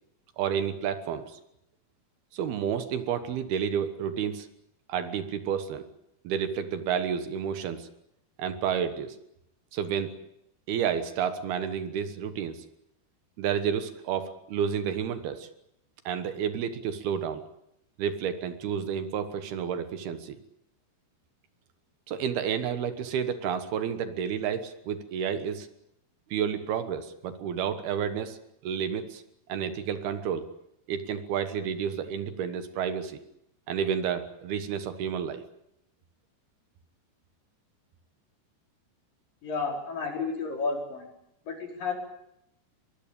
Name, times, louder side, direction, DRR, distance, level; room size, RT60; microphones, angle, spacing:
voice 1, 0.4-1.4 2.3-4.5 4.9-5.8 6.2-7.9 8.4-9.2 9.7-10.1 10.7-12.7 13.4-15.5 16.1-17.4 18.0-20.4 22.1-25.7 26.3-28.4 28.6-29.2 29.5-30.5 30.9-33.2 33.7-35.4, right 8 dB, 70° right, 10 dB, 3.2 m, -30 dB
voice 2, 39.4-41.1 41.5-41.9, left 4 dB, 55° left, 2 dB, 6.2 m, -31 dB
23.5 x 22.0 x 8.8 m, 0.80 s
omnidirectional pair, 4.8 m